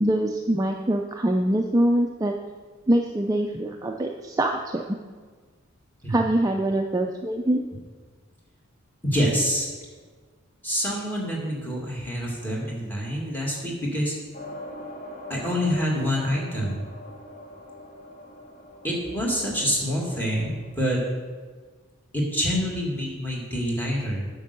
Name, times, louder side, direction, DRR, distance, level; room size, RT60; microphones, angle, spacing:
voice 1, 0.0-2.3 2.9-4.8 6.1-7.6, right 1 dB, 15° right, 2 dB, 0.4 m, -24 dB
voice 2, 9.0-9.7 10.6-14.1 15.3-16.8 18.8-21.0 22.1-24.3, equal, 10° left, -3 dB, 2.0 m, -26 dB
sound 1, 14.3-21.1, left 1 dB, 45° left, 1.7 m, -43 dB
9.0 x 5.3 x 6.7 m, 1.5 s
head